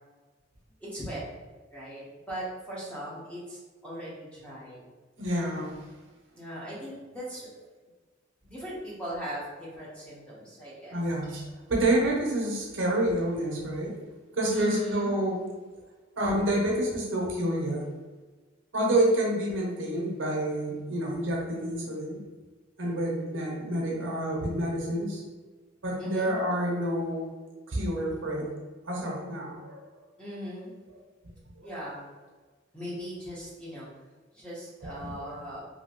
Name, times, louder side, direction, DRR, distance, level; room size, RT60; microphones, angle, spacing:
voice 1, 0.8-1.2 1.7-4.8 6.3-7.5 8.4-11.0 14.5-15.2 26.0-26.3 30.2-30.7 31.6-32.0 32.7-33.9 34.3-35.6, equal, 5° left, -8 dB, 0.9 m, -38 dB
voice 2, 5.2-5.9 10.9-13.9 14.3-15.5 16.2-17.9 18.7-22.2 22.8-25.2 25.8-27.3 27.7-28.5 28.9-29.8 34.8-35.4, right 1 dB, 70° right, -2 dB, 0.7 m, -28 dB
2.8 x 2.7 x 2.9 m, 1.3 s
head